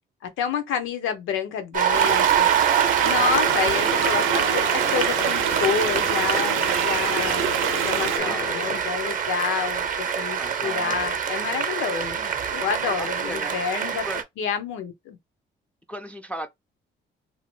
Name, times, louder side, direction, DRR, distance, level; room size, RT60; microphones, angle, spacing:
voice 1, 0.4-2.5 3.0-14.0 14.4-15.2, left 7 dB, 90° left, 0.8 m, -29 dB
Cheering / Applause, 1.7-14.2, right 8 dB, 40° right, 0.6 m, -25 dB
sound 1, 1.9-8.2, right 11 dB, 80° right, 0.4 m, -27 dB
sound 2, 3.0-8.8, left 9 dB, 60° left, 0.5 m, -35 dB
voice 2, 3.7-4.2 8.0-8.6 10.4-11.1 13.0-13.6 14.0-14.2 15.9-16.5, equal, 5° left, 0.3 m, -36 dB
2.8 x 2.0 x 3.0 m
cardioid pair, 90°, 20 cm